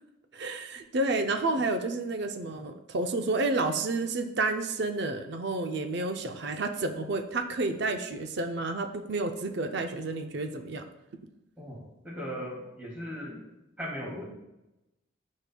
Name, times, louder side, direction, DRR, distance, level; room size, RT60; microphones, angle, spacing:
voice 1, 0.3-10.8, right 2 dB, 55° right, 6 dB, 0.5 m, -30 dB
voice 2, 12.0-13.4 13.8-14.2, equal, 5° right, -6 dB, 2.5 m, -37 dB
11.5 x 5.3 x 2.3 m, 0.94 s
head